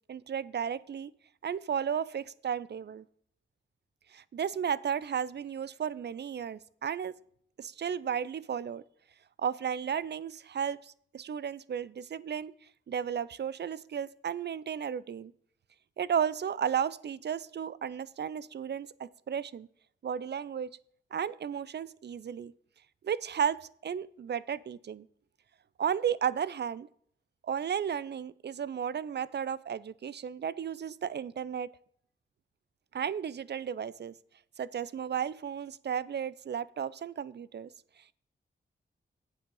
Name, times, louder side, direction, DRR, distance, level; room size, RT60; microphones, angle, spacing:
voice 1, 0.1-1.1 1.4-3.0 4.1-7.2 7.6-8.8 9.4-12.5 12.9-15.3 16.0-19.7 20.0-20.7 21.1-22.5 23.0-25.1 25.8-26.9 27.4-31.7 32.9-34.1 34.6-37.7, right 8 dB, 55° right, 19 dB, 0.4 m, -34 dB
8.1 x 6.9 x 5.5 m, 0.64 s
cardioid pair, 60°, 21 cm